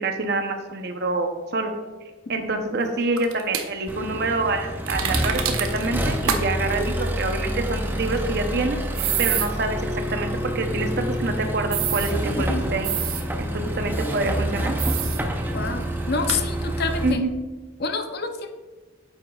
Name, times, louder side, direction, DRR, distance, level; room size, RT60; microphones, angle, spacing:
voice 1, 0.0-1.7 2.3-9.8 10.1-10.3 10.5-12.9 13.4-14.8 17.0-17.3, right 2 dB, 50° right, 6 dB, 0.8 m, -26 dB
sound 1, 3.2-3.7 4.9-5.9 6.3-6.4 6.7-6.8 8.9-9.5 11.7-12.1 12.8-13.2 14.8-15.2 15.7-15.8 16.2-16.4, right 9 dB, 85° right, 0.8 m, -26 dB
Accelerating revving vroom, 3.9-17.1, equal, 10° right, 0.5 m, -27 dB
voice 2, 15.5-17.2 17.8-18.5, left 4 dB, 50° left, 7 dB, 0.6 m, -28 dB
8.9 x 8.0 x 2.4 m, 1.3 s
head